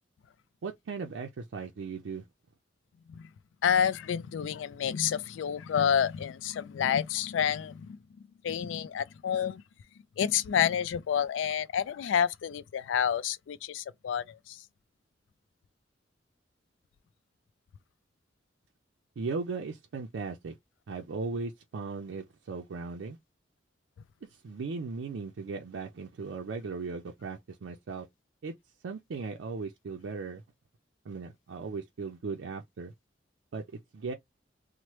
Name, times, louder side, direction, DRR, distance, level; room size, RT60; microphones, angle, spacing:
voice 1, 0.6-2.2 19.2-20.6 20.9-23.2 24.3-28.1 28.4-28.5 28.8-30.4 31.1-32.9 33.5-33.6 33.9-34.1, right 4 dB, 80° right, 0.4 m, -37 dB
voice 2, 3.6-8.0 8.4-9.6 10.2-14.6, left 8 dB, 80° left, 0.3 m, -29 dB
3.0 x 2.0 x 2.9 m
head